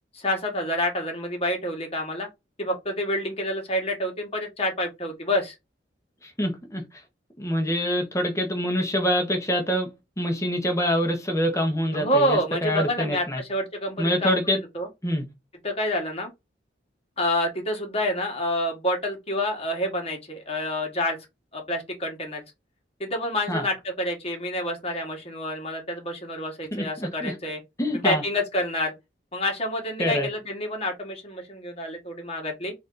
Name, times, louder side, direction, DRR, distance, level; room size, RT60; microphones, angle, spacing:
voice 1, 0.1-2.3 2.6-5.5 11.9-14.4 14.7-14.9 15.6-16.3 17.2-21.2 21.5-22.4 23.0-27.6 28.0-28.9 29.3-32.7, left 1 dB, 35° left, 1.5 m, -28 dB
voice 2, 6.2-6.8 7.4-9.9 10.2-13.4 14.0-14.6 15.0-15.2 23.5-23.6 26.7-27.3 27.8-28.2 30.0-30.3, equal, 15° left, 1.1 m, -25 dB
4.0 x 2.8 x 3.8 m
head